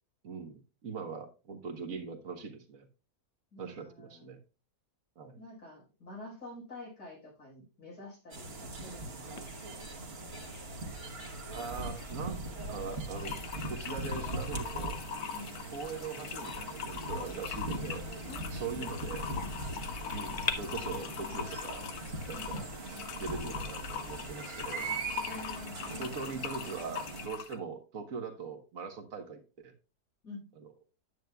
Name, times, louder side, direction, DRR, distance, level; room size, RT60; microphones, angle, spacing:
voice 1, 0.2-2.9 3.6-4.4 5.2-5.4 11.5-12.4 12.7-13.4 13.7-15.0 15.7-18.0 18.5-19.3 20.1-21.8 22.3-22.7 23.2-24.8 26.0-29.7 30.6-30.7, right 5 dB, 60° right, 6 dB, 1.5 m, -41 dB
voice 2, 3.5-4.3 5.4-9.8 15.3-15.5 18.3-18.8 22.3-22.6 25.3-26.7 30.2-30.5, left 1 dB, 85° left, -4 dB, 5.2 m, -48 dB
sound 1, 8.3-27.3, right 2 dB, 40° right, 1.4 m, -40 dB
Bird vocalization bird call bird song, 9.4-20.5, left 5 dB, 35° left, 0.6 m, -47 dB
sound 2, 13.2-27.6, left 8 dB, 70° left, 1.2 m, -42 dB
9.2 x 9.0 x 2.3 m, 0.32 s
omnidirectional pair, 1.7 m